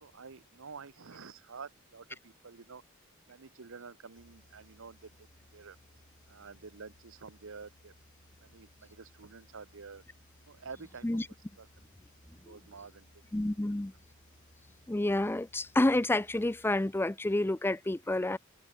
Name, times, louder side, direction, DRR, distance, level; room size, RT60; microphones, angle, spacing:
voice 1, 0.0-2.8 3.3-5.1 5.5-5.8 6.3-7.9 8.4-10.0 10.5-11.1 11.6-11.7 12.3-13.1 13.6-13.7, right 5 dB, 60° right, 0.9 m, -49 dB
sound 1, 4.1-17.3, left 1 dB, 55° left, 3.6 m, -63 dB
voice 2, 13.3-13.9 14.9-18.4, left 1 dB, 10° left, 0.5 m, -29 dB
head